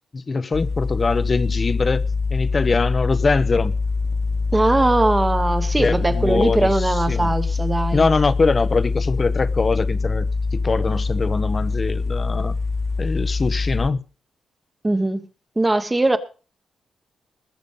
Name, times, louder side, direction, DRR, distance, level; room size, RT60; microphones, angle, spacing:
voice 1, 0.1-3.7 5.8-7.3 7.9-12.5 13.0-14.0, left 4 dB, 30° left, 0.9 m, -23 dB
sound 1, 0.5-13.9, left 4 dB, 65° left, 2.0 m, -24 dB
voice 2, 4.5-8.0 14.8-15.2 15.6-16.2, right 2 dB, 15° right, 1.1 m, -20 dB
20.5 x 7.0 x 5.5 m
wide cardioid pair, 140°, 0 cm